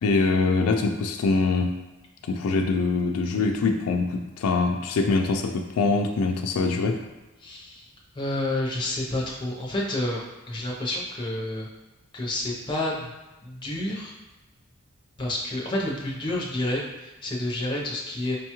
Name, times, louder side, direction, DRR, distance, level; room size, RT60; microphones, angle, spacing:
voice 1, 0.0-1.7 2.3-7.0, left 3 dB, 85° left, 3 dB, 0.4 m, -23 dB
voice 2, 7.4-7.9 8.1-11.7 12.1-13.1 13.4-14.1 15.2-18.4, left 1 dB, 20° left, -3 dB, 0.6 m, -29 dB
5.0 x 2.3 x 2.9 m, 1.1 s
head